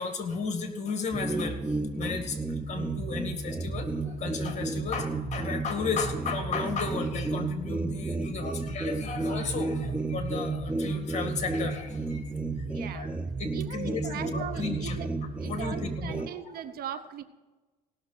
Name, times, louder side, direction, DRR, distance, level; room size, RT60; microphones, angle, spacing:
voice 1, 0.0-1.6 1.9-2.4 2.7-12.2 12.7-13.1 13.4-15.0 15.4-16.6, left 5 dB, 45° left, 6 dB, 2.1 m, -34 dB
sound 1, 1.1-16.3, right 3 dB, 5° right, 0.5 m, -32 dB
voice 2, 12.6-13.1 13.5-15.1 15.4-17.2, right 9 dB, 65° right, 12 dB, 0.8 m, -39 dB
17.5 x 6.5 x 5.9 m, 1.2 s
cardioid pair, 110°, 17 cm